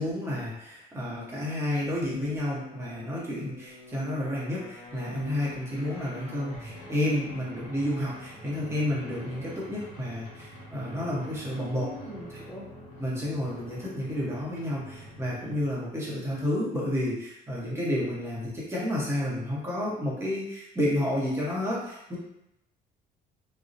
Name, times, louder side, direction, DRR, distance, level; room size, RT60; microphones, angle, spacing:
voice 1, 0.0-11.9 13.0-22.2, left 1 dB, 15° right, -6 dB, 0.9 m, -30 dB
sound 1, 2.5-15.9, left 1 dB, 50° left, 1.1 m, -46 dB
voice 2, 11.6-12.6, left 1 dB, 15° left, -7 dB, 0.5 m, -41 dB
2.7 x 2.0 x 2.5 m, 0.84 s
cardioid pair, 110°, 17 cm